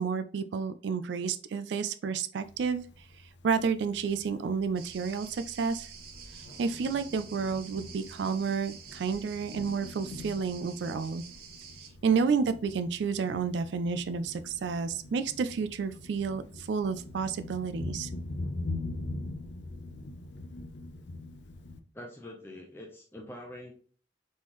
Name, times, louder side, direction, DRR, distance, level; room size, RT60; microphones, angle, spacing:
voice 1, 0.0-2.8 3.4-5.9 6.6-11.2 12.0-18.1, right 5 dB, 75° right, 10 dB, 0.3 m, -30 dB
Thunder, 2.4-21.8, left 2 dB, 75° left, 0.6 m, -43 dB
sound 1, 4.8-11.9, right 6 dB, 55° right, 0.8 m, -49 dB
voice 2, 21.9-23.7, left 1 dB, 15° left, -1 dB, 0.7 m, -44 dB
4.2 x 3.6 x 3.0 m, 0.42 s
head